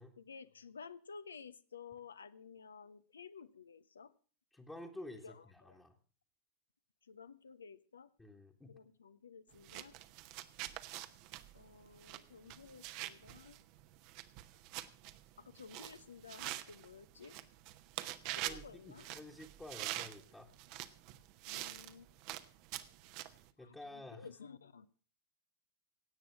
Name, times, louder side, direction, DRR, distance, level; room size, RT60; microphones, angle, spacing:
voice 1, 0.2-4.1 5.2-5.8 7.0-8.1 8.7-9.9 11.5-13.6 15.4-17.4 18.4-19.2 21.5-22.2 23.6-24.9, left 5 dB, 70° left, 14 dB, 0.8 m, -54 dB
voice 2, 4.5-6.0 8.2-8.8 18.4-20.5 23.1-24.3, left 1 dB, 10° left, -1 dB, 1.5 m, -51 dB
sound 1, 9.5-23.5, right 15 dB, 45° right, 0.9 m, -46 dB
16.5 x 8.7 x 6.1 m, 0.40 s
figure-of-eight pair, 90°, 0 cm